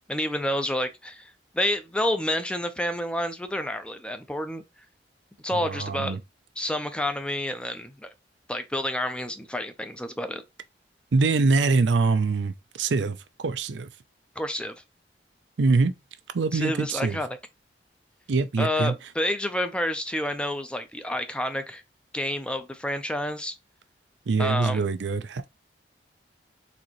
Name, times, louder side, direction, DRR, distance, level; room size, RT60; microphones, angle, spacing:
voice 1, 0.1-4.6 5.4-6.2 6.6-8.1 8.5-10.4 14.4-14.8 16.5-17.3 18.6-21.8 22.1-23.5 24.4-24.9, left 1 dB, 5° left, 0.5 m, -29 dB
voice 2, 5.5-6.2 11.1-13.9 15.6-15.9 16.3-17.2 18.3-18.9 24.3-25.5, right 3 dB, 80° right, 0.5 m, -24 dB
4.2 x 3.8 x 3.0 m
head